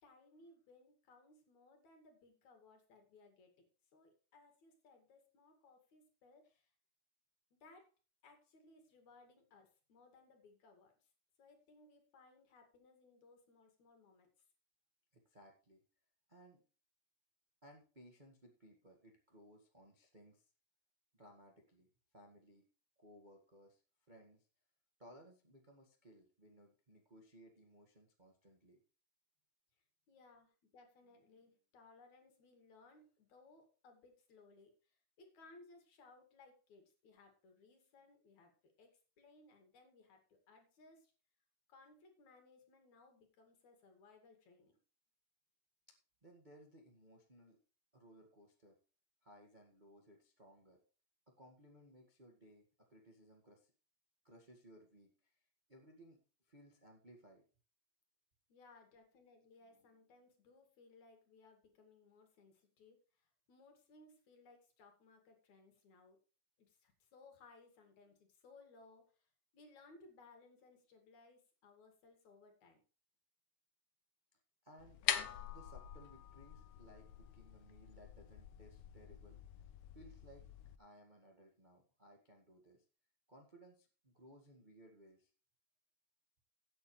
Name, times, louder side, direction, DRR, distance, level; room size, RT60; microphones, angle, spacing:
voice 1, 0.0-3.7 3.9-6.7 7.6-7.9 8.2-11.1 11.4-14.3 30.1-38.5 38.8-38.9 39.2-41.1 41.7-44.8 58.5-66.2 66.6-72.8, left 3 dB, 55° left, 4 dB, 3.4 m, -64 dB
voice 2, 15.1-15.8 16.3-16.6 17.6-20.5 21.1-21.9 22.1-22.7 23.0-23.8 24.1-24.5 25.0-28.8 45.9-46.0 46.2-47.6 47.9-48.8 49.2-50.8 51.3-53.7 54.2-55.4 55.7-56.2 56.4-57.4 74.3-75.0 75.5-79.7 79.9-80.5 80.8-82.8 83.3-85.3, equal, 30° right, 1 dB, 0.8 m, -62 dB
sound 1, 74.8-80.8, left 11 dB, 75° left, 1.7 m, -44 dB
16.0 x 8.5 x 3.2 m, 0.35 s
omnidirectional pair, 4.2 m